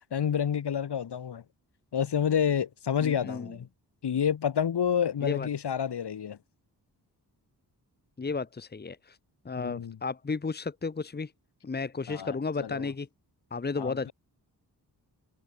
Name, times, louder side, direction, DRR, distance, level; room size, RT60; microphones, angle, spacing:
voice 1, 0.1-1.4 1.9-3.7 4.0-6.4 9.6-10.0 12.1-12.9 13.8-14.1, left 8 dB, 75° left, 6.6 m, -29 dB
voice 2, 3.0-3.5 5.2-5.5 8.2-9.2 9.4-11.3 11.6-13.1 13.5-14.1, left 4 dB, 25° left, 1.6 m, -33 dB
wide cardioid pair, 175°, 40 cm